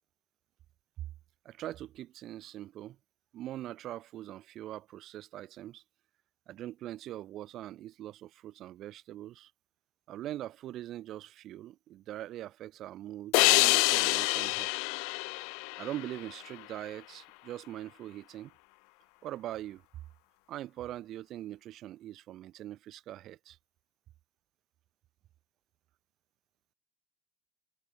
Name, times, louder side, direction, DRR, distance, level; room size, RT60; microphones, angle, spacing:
voice 1, 1.4-3.0 3.3-5.8 6.5-9.5 10.1-14.7 15.8-18.5 19.2-19.8 20.5-23.6, right 13 dB, 50° right, 1.1 m, -42 dB
sound 1, 13.3-16.6, left 37 dB, 75° left, 0.4 m, -27 dB
supercardioid pair, 125°, 0 cm